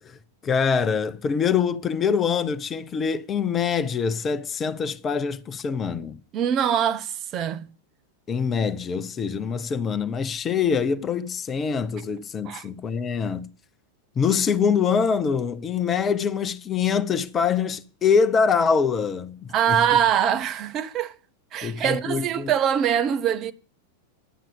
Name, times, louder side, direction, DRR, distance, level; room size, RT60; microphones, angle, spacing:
voice 1, 0.0-6.2 8.3-13.5 14.2-19.8 21.6-22.5, left 6 dB, 25° left, 0.7 m, -24 dB
voice 2, 6.3-7.7 12.5-12.6 19.5-21.1 21.5-23.5, right 9 dB, 35° right, 0.6 m, -23 dB
11.0 x 7.6 x 7.0 m
figure-of-eight pair, 90°, 0 cm